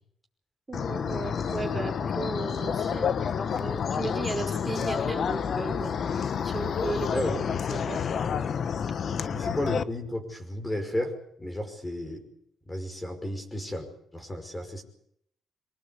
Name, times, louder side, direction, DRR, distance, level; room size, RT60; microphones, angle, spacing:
sound 1, 0.7-9.8, left 7 dB, 55° left, 1.2 m, -29 dB
voice 1, 0.7-7.2 7.7-8.1, right 3 dB, 20° right, 3 dB, 5.3 m, -36 dB
voice 2, 7.1-7.5 9.3-12.2 12.7-14.8, left 1 dB, 15° left, 5 dB, 5.6 m, -33 dB
24.0 x 19.0 x 8.5 m, 0.70 s
cardioid pair, 90°, 0 cm